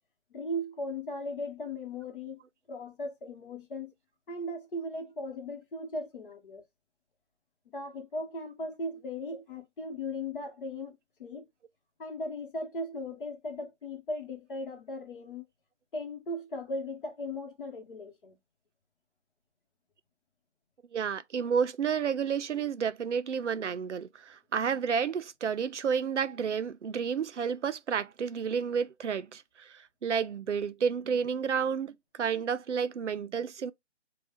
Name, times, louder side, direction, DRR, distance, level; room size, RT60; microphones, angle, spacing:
voice 1, 0.3-2.4 2.7-3.9 4.3-6.6 7.7-11.5 12.0-15.4 15.9-18.4, left 1 dB, 50° left, 1.1 m, -37 dB
voice 2, 20.9-29.7 30.0-33.7, right 6 dB, 75° right, 0.5 m, -31 dB
3.2 x 2.3 x 4.2 m
figure-of-eight pair, 150°, 35 cm